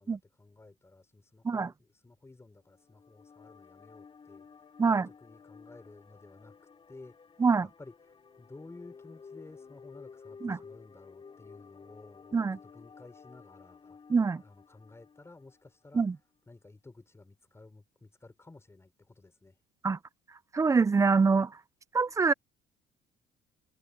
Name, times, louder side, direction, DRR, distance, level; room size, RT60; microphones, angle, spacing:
voice 1, 0.0-4.5 4.9-6.5 6.9-7.1 7.8-12.4 12.6-14.0 14.4-16.1 16.5-19.6, left 2 dB, 15° left, 5.9 m, -54 dB
sound 1, 2.6-16.0, left 5 dB, 30° left, 4.1 m, -53 dB
voice 2, 14.1-14.4 15.9-16.2 19.8-20.0 20.5-21.5 21.9-22.3, right 4 dB, 20° right, 0.5 m, -25 dB
cardioid pair, 110°, 17 cm